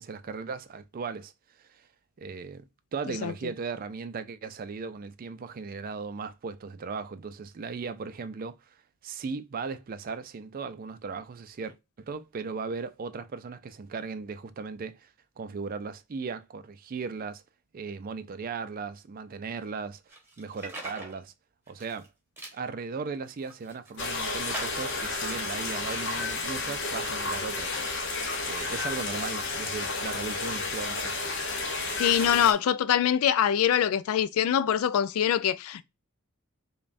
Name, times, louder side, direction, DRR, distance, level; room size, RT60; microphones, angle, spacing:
voice 1, 0.0-1.3 1.6-1.9 2.2-2.6 2.9-8.8 9.0-17.4 17.7-20.0 20.4-21.3 21.7-22.1 22.5-27.8 28.4-31.2, right 5 dB, 45° right, 0.4 m, -37 dB
sound 1, 20.1-21.2 21.7-22.1 22.4-22.6 23.2-24.0 24.5-25.0, right 2 dB, 10° right, 1.1 m, -41 dB
sound 2, 24.0-32.5, left 3 dB, 60° left, 0.9 m, -31 dB
voice 2, 32.0-35.8, left 9 dB, 85° left, 0.3 m, -24 dB
5.1 x 2.3 x 2.5 m
head